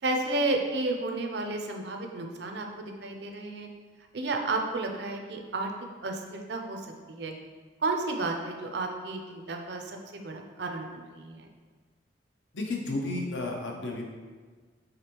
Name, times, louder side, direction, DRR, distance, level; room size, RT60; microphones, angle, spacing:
voice 1, 0.0-3.7 4.1-5.7 6.0-6.8 7.1-7.3 7.8-11.5, right 2 dB, 65° right, 3 dB, 0.5 m, -32 dB
voice 2, 12.5-14.1, left 2 dB, 80° left, 0 dB, 0.8 m, -32 dB
5.0 x 3.6 x 3.0 m, 1.4 s
head